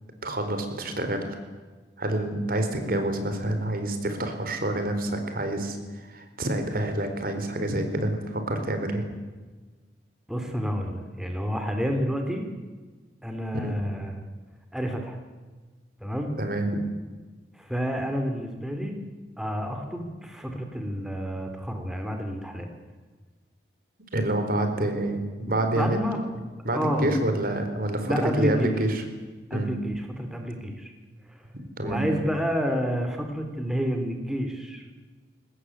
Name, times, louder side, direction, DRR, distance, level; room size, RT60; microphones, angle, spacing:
voice 1, 0.2-1.4 2.0-5.8 6.1-9.0 13.6-13.7 16.4-16.7 24.1-26.0 26.6-29.0 29.5-29.7 31.8-32.0, right 1 dB, 55° right, 7 dB, 4.2 m, -27 dB
voice 2, 10.3-12.5 13.2-14.2 14.7-15.2 16.0-16.3 17.5-19.0 19.4-22.7 25.7-26.2 26.7-27.2 28.0-28.8 29.5-30.9 31.2-31.4 31.8-34.9, equal, 5° right, 4 dB, 2.8 m, -29 dB
22.5 x 19.5 x 9.9 m, 1.4 s
head